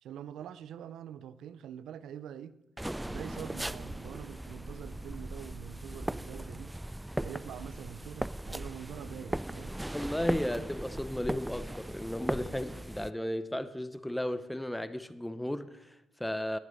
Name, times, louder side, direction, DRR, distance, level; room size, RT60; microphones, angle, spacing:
voice 1, 0.0-2.6 3.1-6.8 7.2-9.7, right 9 dB, 75° right, 0.6 m, -45 dB
sound 1, 2.8-13.1, right 1 dB, 10° right, 0.4 m, -38 dB
voice 2, 9.9-16.6, left 1 dB, 5° left, 0.8 m, -34 dB
11.0 x 9.5 x 6.7 m
supercardioid pair, 55°, 0 cm